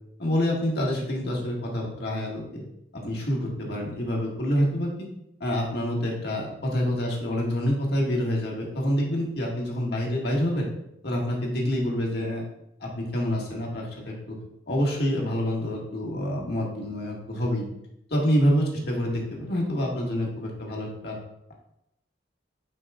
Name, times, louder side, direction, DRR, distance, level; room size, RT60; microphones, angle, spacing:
voice 1, 0.2-2.7 2.9-4.9 5.4-10.7 11.0-12.4 12.8-14.4 14.7-17.7 18.1-21.2, equal, 60° left, -2 dB, 1.7 m, -27 dB
9.7 x 5.1 x 2.4 m, 0.79 s
head